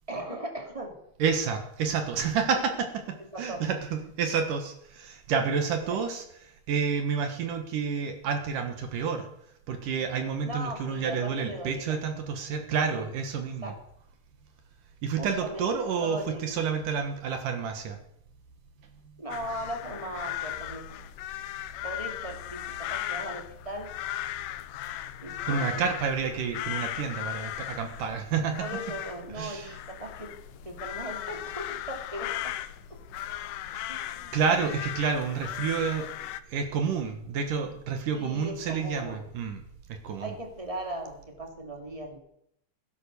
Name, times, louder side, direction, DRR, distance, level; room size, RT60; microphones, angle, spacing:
voice 1, 0.1-1.0 2.5-2.6 3.3-3.6 5.7-5.8 10.4-12.0 12.9-13.0 13.6-13.8 15.2-16.6 19.2-21.0 21.8-23.9 25.2-26.0 28.3-30.3 30.6-32.5 33.9-34.3 34.6-34.8 38.1-39.2 40.2-42.2, right 1 dB, 10° right, 2 dB, 2.0 m, -38 dB
voice 2, 1.2-6.2 6.7-9.3 9.7-13.7 15.0-18.0 19.0-19.1 25.5-28.7 29.3-29.8 33.7-33.9 34.3-36.1 36.5-39.6 39.9-40.3, right 6 dB, 60° right, 5 dB, 2.7 m, -29 dB
sound 1, 19.3-36.4, left 13 dB, 85° left, 1.8 m, -37 dB
16.5 x 10.5 x 6.9 m, 0.75 s
omnidirectional pair, 4.6 m